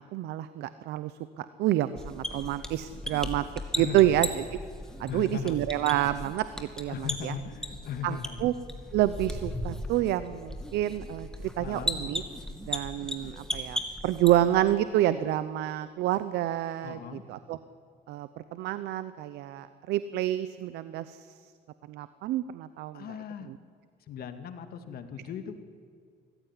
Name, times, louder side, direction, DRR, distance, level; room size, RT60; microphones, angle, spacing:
voice 1, 0.0-3.4 3.7-4.6 5.0-7.3 8.0-8.5 8.9-12.2 12.7-17.0 17.3-17.6 18.1-21.3 21.9-23.0, right 13 dB, 80° right, 13 dB, 0.8 m, -28 dB
sound 1, 2.0-14.7, left 1 dB, 5° left, 2.4 m, -37 dB
voice 2, 3.7-4.3 4.8-5.6 6.9-8.5 11.6-12.0 16.8-17.2 22.9-23.5 24.0-25.6, left 7 dB, 65° left, 8 dB, 2.1 m, -38 dB
23.0 x 15.5 x 9.9 m, 2.1 s
cardioid pair, 110°, 17 cm